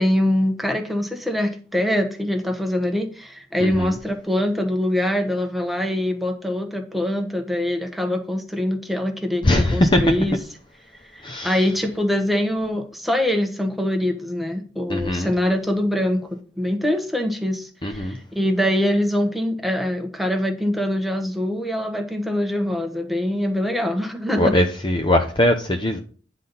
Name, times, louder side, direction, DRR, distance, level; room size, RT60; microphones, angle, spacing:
voice 1, 0.0-10.4 11.1-16.3 16.6-24.5, left 1 dB, ahead, 1.1 m, -23 dB
voice 2, 3.6-3.9 9.4-10.0 11.2-11.6 14.9-15.3 17.8-18.2 24.4-26.0, left 1 dB, 25° left, 0.6 m, -20 dB
9.6 x 4.0 x 5.5 m
head